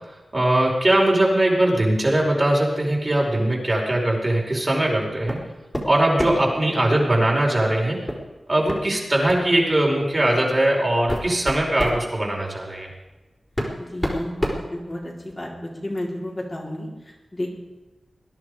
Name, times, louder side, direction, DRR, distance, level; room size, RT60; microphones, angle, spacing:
voice 1, 0.0-5.4 5.8-8.0 8.5-12.9, right 1 dB, 35° right, -2 dB, 4.9 m, -21 dB
sound 1, 5.3-5.5 5.7-6.5 8.1-8.2 8.7-8.8 9.3-9.5 10.3-10.4 10.9-12.0 13.1-13.2 13.6-15.3, equal, 15° left, 4.4 m, -28 dB
voice 2, 13.8-17.5, left 1 dB, 30° left, -3 dB, 4.4 m, -32 dB
20.5 x 10.5 x 5.0 m, 1.1 s
cardioid pair, 45°, 0 cm